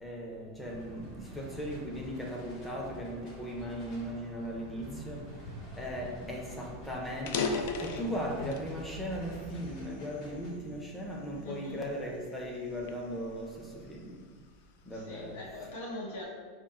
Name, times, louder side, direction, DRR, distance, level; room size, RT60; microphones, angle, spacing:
voice 1, 0.0-5.3 5.8-7.5 7.8-14.2 14.8-15.4, equal, 10° left, -1 dB, 0.5 m, -38 dB
sound 1, 0.6-10.5, left 1 dB, 45° left, 1.1 m, -49 dB
sound 2, 0.7-9.7, right 1 dB, 40° right, 0.5 m, -53 dB
voice 2, 6.0-6.4 11.4-11.8 14.8-16.2, left 1 dB, 80° left, -4 dB, 1.1 m, -42 dB
sound 3, 6.1-6.2 6.5-6.6 7.1-8.7 9.3-10.5 11.1-11.4 12.0-14.0, left 4 dB, 65° left, 0.3 m, -36 dB
3.5 x 2.0 x 4.0 m, 1.5 s
supercardioid pair, 150°, 0 cm